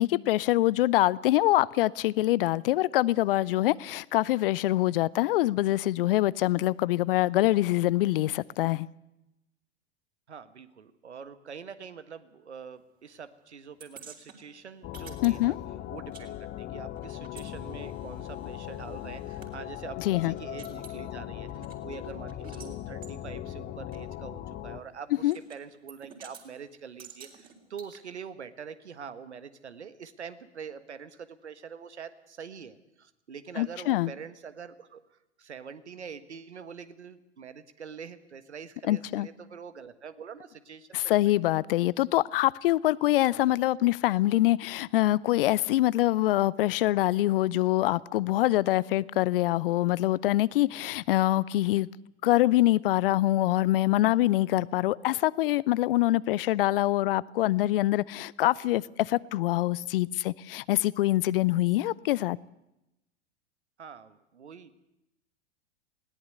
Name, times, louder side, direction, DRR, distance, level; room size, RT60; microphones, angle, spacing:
voice 1, 0.0-8.9 15.2-15.5 20.0-20.3 25.2-25.3 33.6-34.1 38.9-39.3 40.9-51.9 52.2-62.4, left 16 dB, 55° left, 0.7 m, -25 dB
voice 2, 10.3-15.6 15.9-35.0 35.4-41.0 63.8-64.7, right 6 dB, 80° right, 1.6 m, -44 dB
sound 1, 13.8-16.3 16.5-19.5 20.0-20.1 20.4-21.0 21.5-22.7 23.0-23.2 23.9-24.0 25.3-25.6 25.9-26.5 27.0-28.0, right 6 dB, 25° right, 3.7 m, -50 dB
sound 2, 14.8-24.8, left 12 dB, 30° left, 1.2 m, -39 dB
20.0 x 17.5 x 7.9 m
figure-of-eight pair, 95°, 34 cm